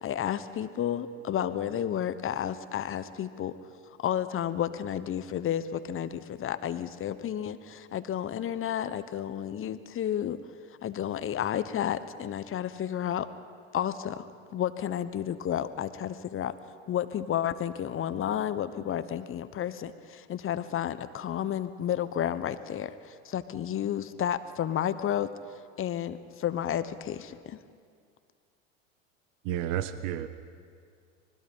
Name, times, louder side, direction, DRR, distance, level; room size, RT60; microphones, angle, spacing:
voice 1, 0.0-3.5 4.0-10.4 10.8-13.3 13.7-16.5 16.9-25.3 25.8-27.6, left 10 dB, 35° left, 12 dB, 1.2 m, -31 dB
voice 2, 29.4-30.3, right 11 dB, 60° right, 12 dB, 1.3 m, -31 dB
25.5 x 20.0 x 5.6 m, 2.2 s
hypercardioid pair, 85°, 39 cm